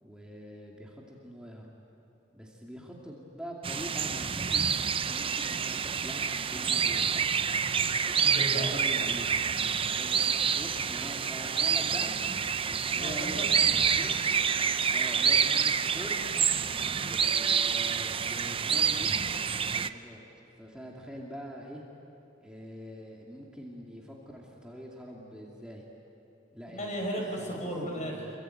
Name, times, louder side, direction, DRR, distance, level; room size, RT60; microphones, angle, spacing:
voice 1, 0.0-1.7 2.3-7.3 8.5-9.3 9.9-12.1 12.7-14.1 14.9-16.2 17.0-19.2 19.7-20.2 20.6-21.8 22.4-25.8 26.5-27.1 27.4-27.6 27.9-28.3, equal, 5° right, -3 dB, 2.4 m, -44 dB
sound 1, 3.6-19.9, right 7 dB, 30° right, 0.6 m, -28 dB
voice 2, 8.2-8.7 12.9-13.7 26.7-28.3, equal, 40° left, 1 dB, 6.3 m, -35 dB
27.5 x 23.5 x 9.2 m, 2.9 s
head